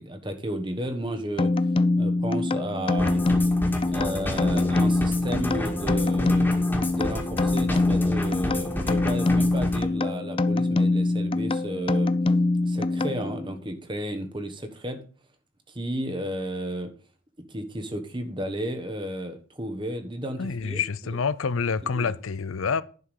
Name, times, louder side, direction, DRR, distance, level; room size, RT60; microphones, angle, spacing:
voice 1, 0.0-1.5 2.0-3.2 3.9-6.5 6.9-12.1 12.6-15.0 15.7-16.9 17.5-21.2 21.8-22.1, right 1 dB, 25° right, 1.3 m, -33 dB
sound 1, 1.4-13.6, left 2 dB, 25° left, 0.4 m, -24 dB
sound 2, 3.0-9.8, left 1 dB, 10° left, 1.9 m, -31 dB
voice 2, 20.4-22.8, left 5 dB, 85° left, 0.6 m, -27 dB
11.0 x 5.9 x 4.8 m
head